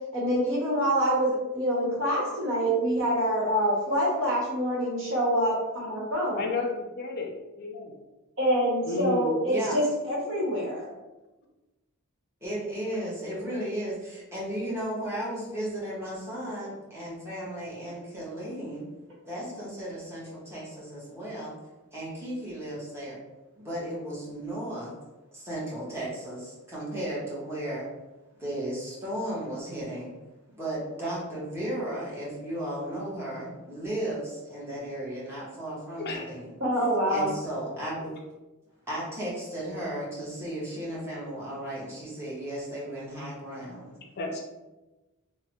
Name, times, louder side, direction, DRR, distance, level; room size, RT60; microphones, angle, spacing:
voice 1, 0.1-6.4 8.4-10.9 36.6-37.3, equal, 60° right, -5 dB, 1.1 m, -26 dB
voice 2, 6.3-7.3 7.6-7.9 8.8-9.3 36.0-36.3 44.2-44.4, left 2 dB, 45° left, 1 dB, 0.4 m, -31 dB
voice 3, 9.5-9.8 12.4-18.9 19.3-21.5 21.9-23.2 23.6-24.9 25.3-27.9 28.4-30.1 30.5-36.5 37.1-38.1 38.9-44.0, right 1 dB, 10° right, -7 dB, 0.8 m, -35 dB
3.2 x 2.0 x 2.8 m, 1.1 s
head